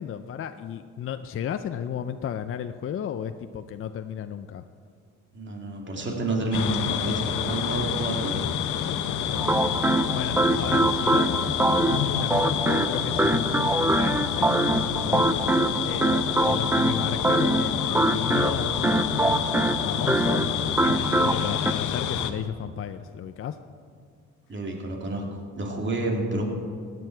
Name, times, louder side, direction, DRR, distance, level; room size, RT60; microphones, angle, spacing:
voice 1, 0.0-4.6 8.9-23.6, left 9 dB, 45° left, 9 dB, 0.5 m, -34 dB
voice 2, 5.3-8.5 24.5-26.4, right 2 dB, 40° right, 1 dB, 2.6 m, -29 dB
sound 1, 6.5-22.3, left 9 dB, 80° left, 0.9 m, -28 dB
sound 2, 9.3-21.7, right 2 dB, 5° right, 0.4 m, -24 dB
16.5 x 9.4 x 4.6 m, 2.2 s
cardioid pair, 90°, 30 cm